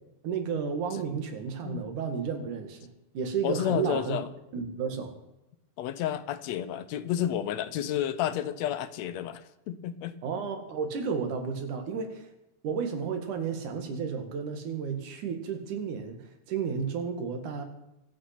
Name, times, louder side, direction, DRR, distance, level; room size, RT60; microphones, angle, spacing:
voice 1, 0.2-4.2 4.5-5.2 10.2-12.3 12.6-17.6, right 6 dB, 80° right, 6 dB, 3.4 m, -32 dB
voice 2, 3.4-4.3 5.8-10.2, left 11 dB, 70° left, 14 dB, 1.8 m, -31 dB
25.5 x 8.7 x 5.9 m, 0.89 s
omnidirectional pair, 3.5 m